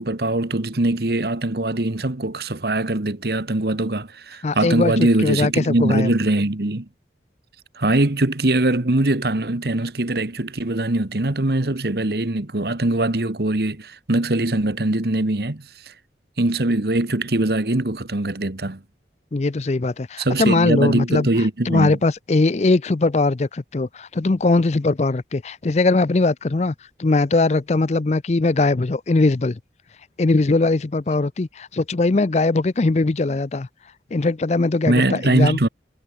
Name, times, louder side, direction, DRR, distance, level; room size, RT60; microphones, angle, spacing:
voice 1, 0.0-6.9 7.7-15.9 16.4-18.8 20.2-22.0 34.9-35.7, right 2 dB, 60° right, 1.4 m, -22 dB
voice 2, 4.4-6.1 19.3-21.3 21.7-26.7 27.0-29.6 30.2-33.7 34.1-35.6, left 3 dB, 40° left, 0.5 m, -20 dB
head